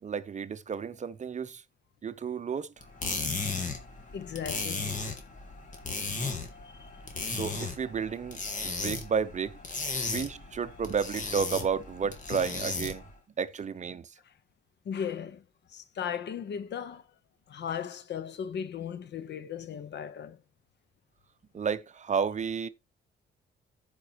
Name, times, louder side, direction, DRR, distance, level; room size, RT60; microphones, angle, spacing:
voice 1, 0.0-1.6 2.0-2.9 6.0-6.3 7.3-9.6 10.0-13.1 13.4-14.1 21.5-22.7, right 6 dB, 35° right, 0.7 m, -32 dB
sound 1, 2.8-13.1, left 4 dB, 40° left, 2.2 m, -35 dB
voice 2, 4.1-4.9 6.6-7.3 10.0-10.2 12.3-12.5 14.2-14.3 14.8-17.1 17.5-20.4, left 8 dB, 60° left, 1.0 m, -37 dB
15.5 x 5.2 x 2.9 m
cardioid pair, 90°, 20 cm